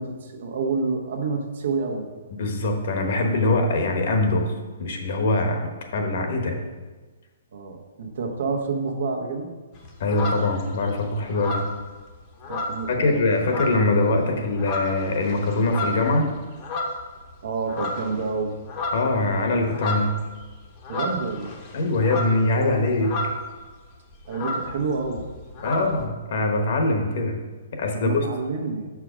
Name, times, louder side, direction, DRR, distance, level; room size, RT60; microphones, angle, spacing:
voice 1, 0.0-2.1 7.5-9.5 12.5-13.3 17.4-18.6 20.9-21.6 24.3-25.3 27.9-28.9, right 4 dB, 65° right, 2 dB, 1.2 m, -28 dB
voice 2, 2.4-4.5 4.8-5.6 5.9-6.6 10.0-11.7 12.9-16.3 18.9-20.1 21.7-23.1 25.6-27.4 27.7-28.3, left 2 dB, 55° left, 3 dB, 1.1 m, -23 dB
sound 1, 9.7-10.9 11.3-13.1 13.4-14.0 14.4-17.3 17.7-18.2 18.5-23.6 23.8-23.9 24.1-26.0, left 2 dB, 25° left, 0.9 m, -31 dB
6.1 x 4.8 x 5.0 m, 1.3 s
hypercardioid pair, 160°, 0 cm